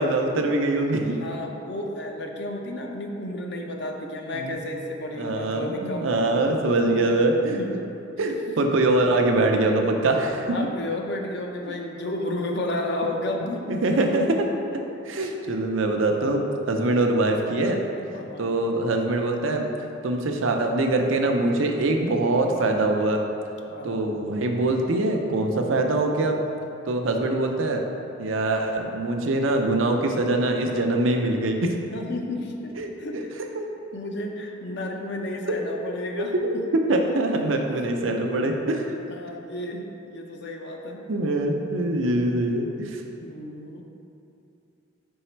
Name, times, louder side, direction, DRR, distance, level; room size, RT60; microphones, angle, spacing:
voice 1, 0.0-1.1 4.3-4.6 5.2-7.8 8.2-10.6 13.7-14.8 15.0-16.4 16.7-17.8 18.4-19.7 20.0-23.2 23.8-26.4 26.9-27.8 28.2-31.7 32.7-33.2 36.2-38.9 41.1-43.0, right 2 dB, 90° right, 3 dB, 0.6 m, -23 dB
voice 2, 1.2-6.3 6.8-7.0 7.5-7.8 10.4-13.7 15.2-15.3 16.8-17.0 18.1-18.5 23.7-24.0 27.1-27.3 31.9-32.7 33.0-33.2 33.9-36.6 39.1-41.0 43.2-43.8, left 1 dB, 60° left, 2 dB, 0.6 m, -32 dB
5.4 x 4.0 x 4.4 m, 2.8 s
head